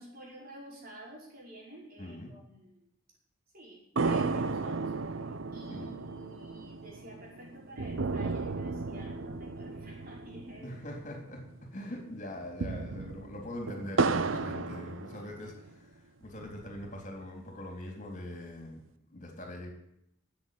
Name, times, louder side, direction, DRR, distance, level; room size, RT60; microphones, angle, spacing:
voice 1, 0.0-2.9 3.5-10.8, right 1 dB, 50° right, -3 dB, 5.5 m, -50 dB
voice 2, 2.0-2.3 5.7-5.9 10.6-19.7, left 1 dB, 40° left, 1 dB, 3.7 m, -42 dB
sound 1, 4.0-11.6 11.8-11.9 12.4-15.7 16.2-17.2, right 3 dB, 80° right, 0.8 m, -34 dB
13.0 x 8.1 x 9.7 m, 0.77 s
head